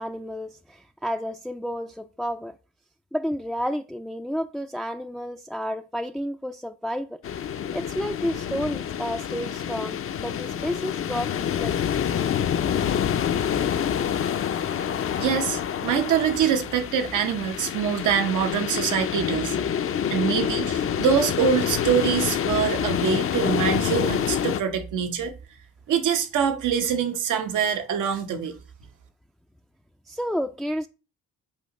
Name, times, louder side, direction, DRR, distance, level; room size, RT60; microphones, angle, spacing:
voice 1, 0.0-2.6 3.1-7.2 7.7-11.7 30.1-30.9, equal, ahead, 0.4 m, -31 dB
sound 1, 7.2-24.6, left 9 dB, 45° left, 0.6 m, -27 dB
voice 2, 15.2-19.6 20.1-25.3 25.9-28.5, right 7 dB, 80° right, 1.2 m, -24 dB
8.5 x 2.9 x 5.3 m
cardioid pair, 90°, 30 cm